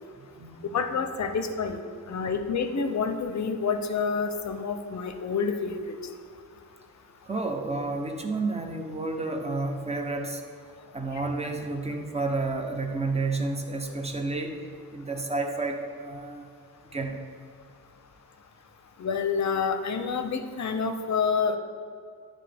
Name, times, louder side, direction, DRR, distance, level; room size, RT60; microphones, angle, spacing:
voice 1, 0.2-0.6 2.1-2.3 7.2-10.4 10.9-16.5 16.9-17.2, right 3 dB, 20° right, 4 dB, 0.6 m, -31 dB
voice 2, 0.7-1.8 2.1-5.8 19.0-21.6, left 5 dB, 50° left, 7 dB, 0.6 m, -28 dB
10.5 x 3.7 x 3.4 m, 2.3 s
wide cardioid pair, 120°, 36 cm